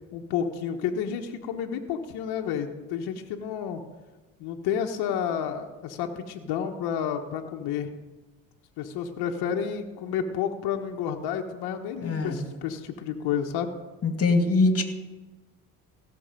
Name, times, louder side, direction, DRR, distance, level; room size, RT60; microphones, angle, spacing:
voice 1, 0.1-3.8 4.4-7.9 8.8-13.7, left 8 dB, 65° left, 3 dB, 1.2 m, -30 dB
voice 2, 12.0-12.4 14.0-14.8, left 3 dB, 35° left, 6 dB, 2.2 m, -23 dB
16.5 x 6.5 x 5.2 m, 1.2 s
hypercardioid pair, 60°, 42 cm